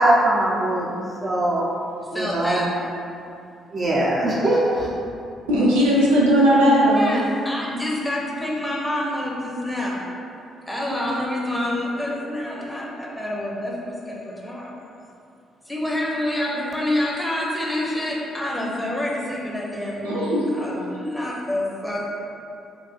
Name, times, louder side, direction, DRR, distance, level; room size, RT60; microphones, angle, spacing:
voice 1, 0.0-1.7 2.1-2.6 3.7-4.9, right 1 dB, 35° right, -5 dB, 0.4 m, -21 dB
voice 2, 2.1-2.7 7.0-10.0 10.7-14.7 15.7-20.3 20.6-22.1, left 1 dB, 10° left, -4 dB, 0.7 m, -27 dB
voice 3, 5.5-7.2 20.0-20.8, equal, 75° right, -8 dB, 0.6 m, -18 dB
3.7 x 2.3 x 2.4 m, 2.5 s
figure-of-eight pair, 45°, 0 cm